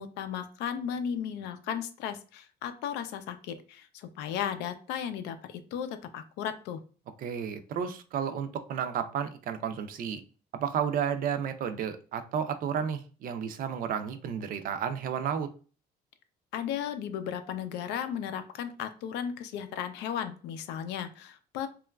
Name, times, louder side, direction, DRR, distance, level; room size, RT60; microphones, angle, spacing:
voice 1, 0.0-6.8 16.5-21.7, left 8 dB, 90° left, 9 dB, 0.4 m, -35 dB
voice 2, 7.2-10.2 10.5-15.5, right 8 dB, 55° right, 9 dB, 0.4 m, -32 dB
2.9 x 2.3 x 2.2 m, 0.37 s
cardioid pair, 110°, 17 cm